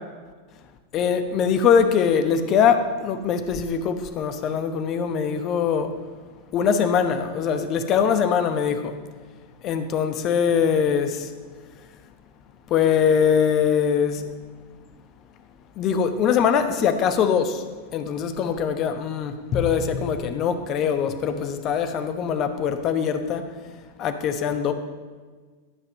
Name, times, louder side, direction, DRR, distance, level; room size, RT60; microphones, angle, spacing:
voice 1, 0.9-6.0 6.5-9.0 9.6-11.3 12.7-14.3 15.8-17.6 17.9-23.5 24.0-24.7, left 7 dB, 35° left, 9 dB, 0.9 m, -22 dB
12.0 x 5.8 x 5.3 m, 1.4 s
figure-of-eight pair, 90°, 0 cm